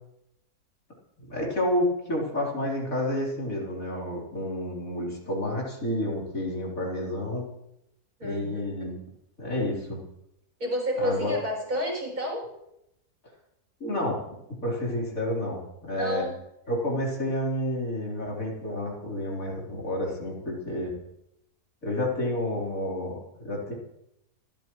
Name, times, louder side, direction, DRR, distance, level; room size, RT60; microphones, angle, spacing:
voice 1, 1.2-7.4 8.2-8.9 9.4-10.0 11.0-11.3 13.8-14.2 14.6-16.3 16.7-20.9 21.8-23.7, left 1 dB, 60° left, -3 dB, 4.4 m, -30 dB
voice 2, 8.2-8.6 10.6-12.5 15.9-16.4, equal, 65° right, -1 dB, 7.2 m, -30 dB
28.0 x 13.5 x 3.2 m, 0.84 s
omnidirectional pair, 1.7 m